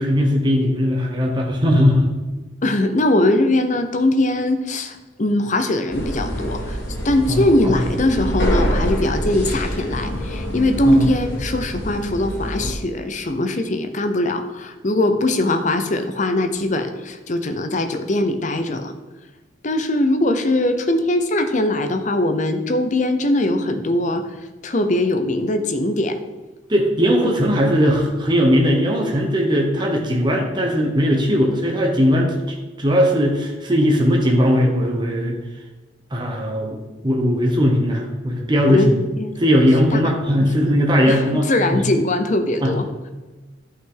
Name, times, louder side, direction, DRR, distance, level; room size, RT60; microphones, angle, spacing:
voice 1, 0.0-2.1 7.3-7.8 10.8-11.1 26.7-35.4 36.1-39.0 39.4-41.8 42.6-42.7, equal, 25° right, 1 dB, 1.0 m, -18 dB
voice 2, 2.6-6.8 7.0-18.9 19.6-24.2 24.6-26.2 38.7-38.9 39.2-39.3 39.9-40.1 40.4-40.5 41.1-42.8, left 1 dB, 40° left, 7 dB, 0.7 m, -21 dB
sound 1, 5.9-12.7, equal, 60° left, 2.5 m, -25 dB
11.5 x 5.6 x 3.9 m, 1.2 s
head